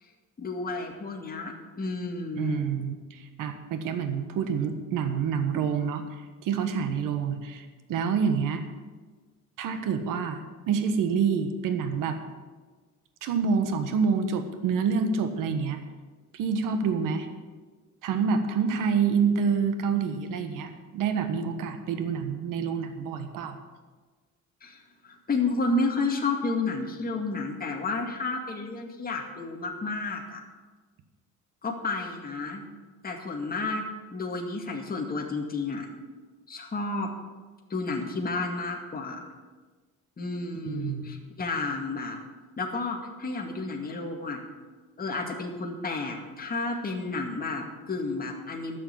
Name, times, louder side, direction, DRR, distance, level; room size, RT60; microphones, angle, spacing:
voice 1, 0.4-2.6 24.6-30.4 31.6-32.6 33.0-33.8 34.1-35.9 36.5-37.1 37.7-39.2 40.2-42.2 42.6-44.4 45.0-48.8, left 3 dB, 30° left, 1 dB, 2.2 m, -31 dB
voice 2, 2.4-6.0 6.4-8.6 9.6-10.4 10.7-12.2 13.2-15.8 16.3-17.3 18.0-23.6 40.7-41.2, right 6 dB, 85° right, 8 dB, 1.4 m, -27 dB
12.5 x 6.7 x 9.3 m, 1.4 s
cardioid pair, 115°, 31 cm